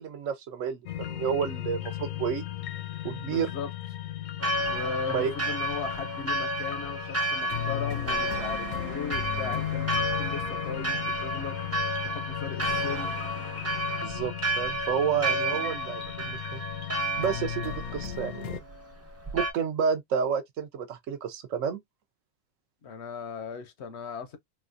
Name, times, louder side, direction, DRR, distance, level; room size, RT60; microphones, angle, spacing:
voice 1, 0.0-2.5 3.0-3.5 5.1-5.3 14.0-16.6 17.2-18.6 19.3-21.8, right 7 dB, 65° right, 1.0 m, -30 dB
sound 1, 0.9-18.6, left 12 dB, 80° left, 1.1 m, -36 dB
voice 2, 3.2-3.7 4.6-13.1 22.8-24.4, left 5 dB, 60° left, 0.8 m, -38 dB
Church bell, 4.4-19.5, right 1 dB, 20° right, 0.4 m, -32 dB
4.1 x 2.2 x 2.5 m
omnidirectional pair, 1.5 m